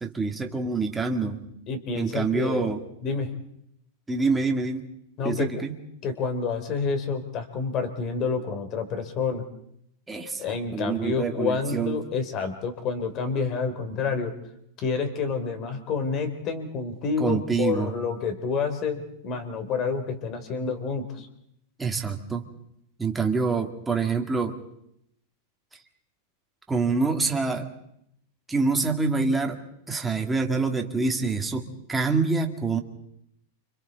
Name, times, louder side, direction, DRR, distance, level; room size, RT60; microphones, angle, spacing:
voice 1, 0.0-1.4 1.9-2.8 4.1-4.8 5.2-5.7 10.1-12.0 17.2-17.9 21.8-22.4 23.0-24.6 26.7-27.7 28.5-29.6 29.9-32.8, right 4 dB, 10° right, 2 dB, 2.1 m, -26 dB
voice 2, 1.7-2.7 3.0-3.3 5.2-5.6 6.0-9.4 10.4-14.3 14.8-21.3, left 5 dB, 35° left, 7 dB, 3.4 m, -28 dB
30.0 x 26.0 x 4.0 m, 0.76 s
supercardioid pair, 140°, 0 cm